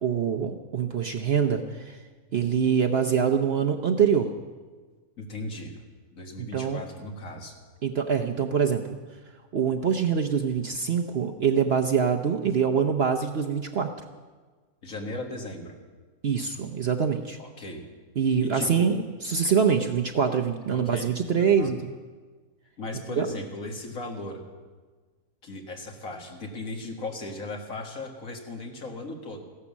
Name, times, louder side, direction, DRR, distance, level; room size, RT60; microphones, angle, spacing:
voice 1, 0.0-2.0 2.3-4.3 6.5-6.8 7.8-9.0 9.5-13.9 16.2-17.4 18.2-19.0 19.2-21.8 23.2-23.3, right 7 dB, 50° right, 4 dB, 0.8 m, -24 dB
voice 2, 5.2-5.8 6.1-7.5 14.8-15.8 17.4-17.8 18.4-18.9 20.7-21.7 22.8-24.4 25.4-29.4, left 2 dB, 60° left, 2 dB, 2.2 m, -37 dB
15.0 x 11.5 x 7.2 m, 1.4 s
omnidirectional pair, 1.6 m